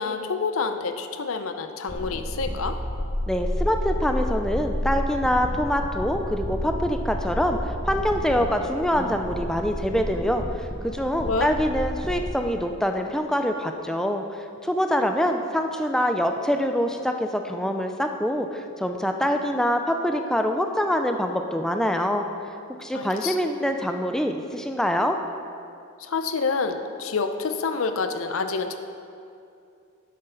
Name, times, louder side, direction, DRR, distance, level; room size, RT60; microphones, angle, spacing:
voice 1, 0.0-2.8 11.2-11.6 22.9-23.4 26.0-28.8, left 4 dB, 70° left, 8 dB, 0.6 m, -28 dB
sound 1, 1.9-12.3, equal, 30° left, 0.9 m, -30 dB
voice 2, 3.3-7.6 7.8-22.2 22.8-25.2, equal, 5° left, 5 dB, 0.3 m, -25 dB
11.0 x 6.5 x 3.9 m, 2.5 s
head